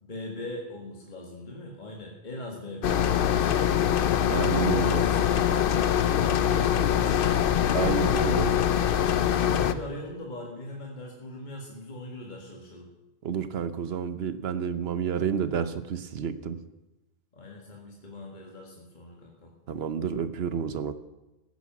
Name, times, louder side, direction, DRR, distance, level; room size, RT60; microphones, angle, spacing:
voice 1, 0.0-3.8 4.5-7.5 7.8-8.5 9.3-12.9 17.3-19.5, left 1 dB, 50° left, -1 dB, 1.9 m, -40 dB
sound 1, 2.8-9.7, left 9 dB, 65° left, 0.8 m, -23 dB
voice 2, 4.3-5.0 7.7-8.5 9.3-9.4 13.2-16.6 19.7-20.9, right 7 dB, 75° right, 12 dB, 1.1 m, -30 dB
14.5 x 10.5 x 6.0 m, 1.0 s
omnidirectional pair, 1.0 m